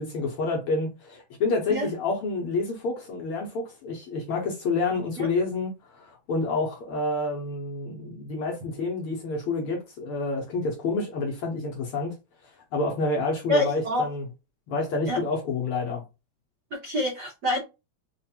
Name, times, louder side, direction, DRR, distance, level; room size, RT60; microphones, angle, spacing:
voice 1, 0.0-12.2 12.7-14.3 14.7-16.0, left 3 dB, 65° left, 1.5 m, -28 dB
voice 2, 13.5-14.0 15.1-15.2 16.8-17.6, left 1 dB, 80° right, 0.9 m, -26 dB
4.7 x 2.5 x 2.8 m
omnidirectional pair, 3.3 m